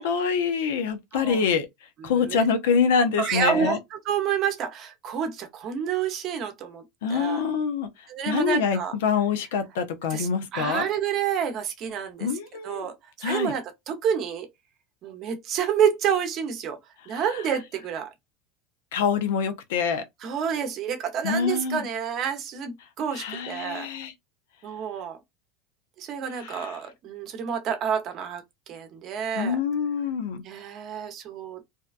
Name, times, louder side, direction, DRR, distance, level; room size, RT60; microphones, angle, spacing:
voice 1, 0.0-1.7 2.0-3.8 7.0-10.9 12.2-12.9 13.2-13.5 17.1-17.4 18.9-20.0 21.2-21.9 23.1-24.1 26.4-26.8 29.3-30.4, left 6 dB, 85° left, 0.6 m, -26 dB
voice 2, 2.0-2.4 3.2-6.8 7.1-7.4 8.1-8.9 10.1-12.3 12.6-14.5 15.0-16.8 17.1-18.1 20.2-23.9 24.6-25.2 26.0-28.4 28.7-29.6 30.4-31.6, right 8 dB, 45° right, 0.7 m, -29 dB
2.7 x 2.2 x 2.4 m
supercardioid pair, 120°, 0 cm